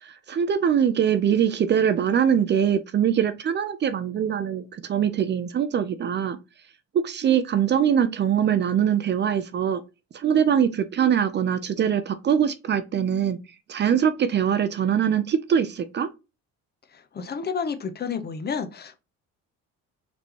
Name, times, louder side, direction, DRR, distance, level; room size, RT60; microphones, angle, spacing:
voice 1, 0.0-6.4 7.0-9.8 10.1-13.4 13.7-16.1, right 8 dB, 35° right, 0.5 m, -23 dB
voice 2, 16.9-19.0, left 6 dB, 35° left, 0.7 m, -30 dB
4.2 x 3.3 x 2.9 m
cardioid pair, 105°, 29 cm